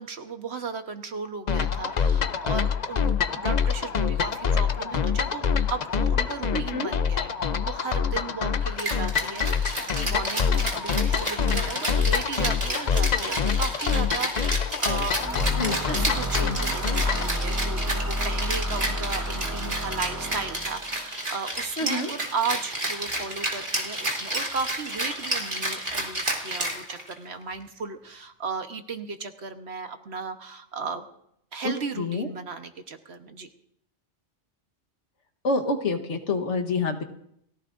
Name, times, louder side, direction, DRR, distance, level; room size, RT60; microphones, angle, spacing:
voice 1, 0.0-7.3 7.6-15.2 15.5-31.1 31.5-33.5, right 4 dB, 65° right, 7 dB, 1.4 m, -35 dB
sound 1, 1.5-17.3, left 6 dB, 45° left, 0.6 m, -26 dB
voice 2, 6.5-6.9 15.6-15.8 21.8-22.1 31.6-32.3 35.4-37.0, left 3 dB, 75° left, 4 dB, 1.6 m, -27 dB
Rattle (instrument), 8.8-27.3, right 1 dB, 45° right, 2.9 m, -31 dB
sound 2, 15.2-20.9, equal, 15° right, 0.8 m, -31 dB
30.0 x 15.5 x 2.6 m, 0.72 s
omnidirectional pair, 1.2 m